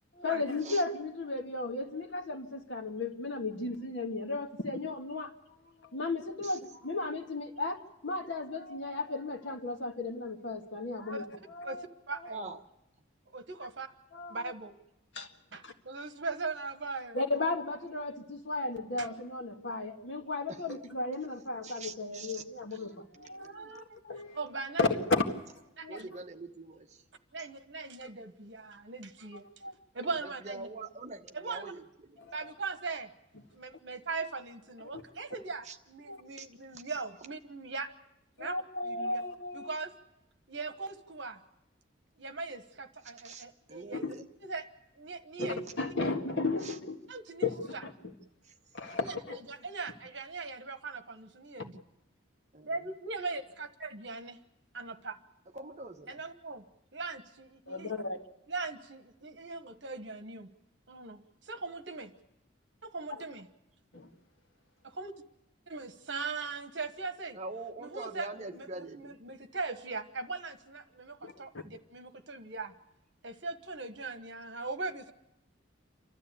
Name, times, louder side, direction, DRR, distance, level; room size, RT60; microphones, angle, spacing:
voice 1, 0.1-5.3 5.8-11.8 14.1-14.5 15.1-15.3 15.6-15.7 17.1-24.4 24.8-25.2 25.8-26.0 29.6-29.7 32.3-32.5 34.9-35.0 36.1-36.2 38.4-39.7 43.9-44.1 45.4-47.0 47.4-47.9 48.7-49.4 57.7-58.2 63.9-64.1 71.2-71.3, left 3 dB, 65° left, 4 dB, 1.8 m, -34 dB
voice 2, 11.6-12.5 13.3-13.9 14.3-14.7 15.5-17.2 19.0-19.1 23.4-24.0 24.3-24.8 25.8-26.1 27.3-29.5 29.9-30.7 31.3-31.7 32.3-33.1 33.5-37.9 38.4-39.2 39.5-39.9 40.5-41.4 42.2-44.1 44.4-44.7 45.0-45.6 47.1-47.8 49.0-49.1 49.5-51.8 52.6-54.4 54.7-55.2 56.1-56.6 56.9-57.9 58.5-60.5 60.9-62.1 62.8-63.5 64.8-65.1 65.7-67.4 67.8-72.7 73.2-75.1, right 3 dB, 60° right, 9 dB, 1.3 m, -40 dB
voice 3, 21.6-22.4 22.7-22.9 23.1-23.8 25.1-25.3 25.9-27.0 27.4-27.5 30.2-31.8 32.1-32.3 35.6-35.8 36.3-36.5 36.7-37.0 43.2-44.2 46.6-46.7 48.4-48.5 52.5-52.8 55.5-56.2 67.3-69.2, right 3 dB, 35° right, 5 dB, 1.1 m, -44 dB
28.5 x 13.0 x 8.4 m, 0.89 s
head